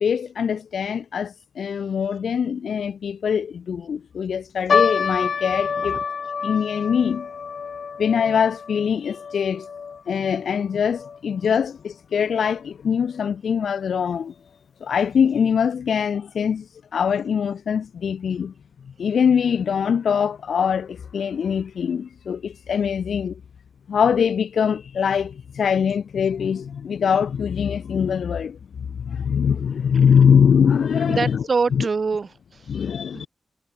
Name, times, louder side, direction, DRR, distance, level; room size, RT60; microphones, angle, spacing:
voice 1, 0.0-6.0 6.4-7.3 8.0-9.7 10.1-14.3 14.8-16.7 16.9-18.5 19.0-23.4 23.9-31.3 32.7-33.3, left 7 dB, 80° left, 0.5 m, -22 dB
sound 1, 4.7-11.2 11.4-11.5 12.3-12.6 13.2-13.3 13.6-13.8, left 6 dB, 60° left, 1.8 m, -27 dB
voice 2, 31.1-32.7 33.1-33.3, right 4 dB, 45° right, 2.5 m, -25 dB
wide cardioid pair, 130°, 0 cm